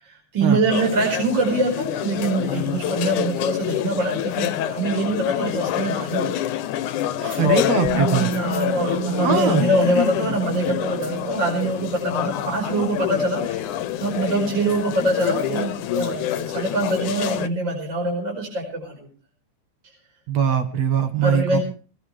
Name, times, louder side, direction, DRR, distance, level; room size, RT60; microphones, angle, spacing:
voice 1, 0.0-6.5 7.2-7.6 8.2-19.1 21.2-21.6, right 2 dB, 35° right, 1 dB, 5.6 m, -24 dB
sound 1, 0.7-17.5, left 12 dB, 75° left, 2.3 m, -27 dB
voice 2, 7.4-8.3 9.2-9.7 20.3-21.6, right 8 dB, 60° right, 8 dB, 2.5 m, -21 dB
Musical instrument, 7.8-15.7 16.0-16.2, right 7 dB, 5° right, 2.3 m, -33 dB
20.5 x 18.5 x 3.3 m, 0.40 s
omnidirectional pair, 3.7 m